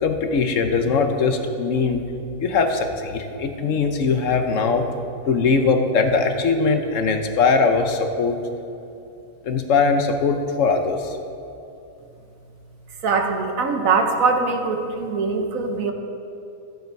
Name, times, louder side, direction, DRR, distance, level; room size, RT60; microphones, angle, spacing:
voice 1, 0.0-2.0 2.4-4.9 5.3-8.4 9.4-11.2, left 4 dB, 65° left, 6 dB, 1.1 m, -21 dB
voice 2, 13.0-15.9, right 4 dB, 75° right, 4 dB, 1.3 m, -22 dB
13.0 x 7.8 x 4.6 m, 2.7 s
omnidirectional pair, 1.5 m